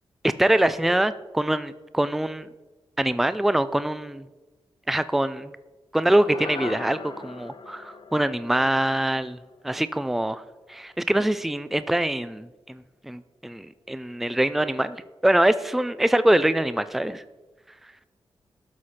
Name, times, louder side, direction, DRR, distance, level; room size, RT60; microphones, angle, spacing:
voice 1, 0.2-2.5 3.0-4.2 4.9-5.5 5.9-9.4 9.6-10.4 10.7-15.0 15.2-17.2, right 1 dB, ahead, 13 dB, 0.4 m, -24 dB
sound 1, 6.2-10.7, left 4 dB, 60° left, 1.0 m, -40 dB
12.5 x 6.2 x 4.3 m, 1.2 s
wide cardioid pair, 105°, 10 cm